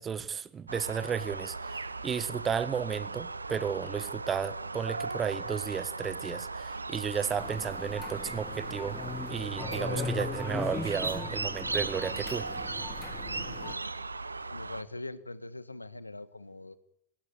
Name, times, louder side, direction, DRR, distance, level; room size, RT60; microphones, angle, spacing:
voice 1, 0.0-9.0 9.3-12.5, right 7 dB, 20° right, 1.3 m, -33 dB
sound 1, 0.7-14.8, right 3 dB, 80° right, 1.2 m, -37 dB
sound 2, 7.4-13.7, left 4 dB, 10° left, 1.9 m, -39 dB
voice 2, 13.5-14.0 14.5-16.8, left 2 dB, 85° left, 1.5 m, -43 dB
24.5 x 21.5 x 9.2 m
figure-of-eight pair, 90°, 0 cm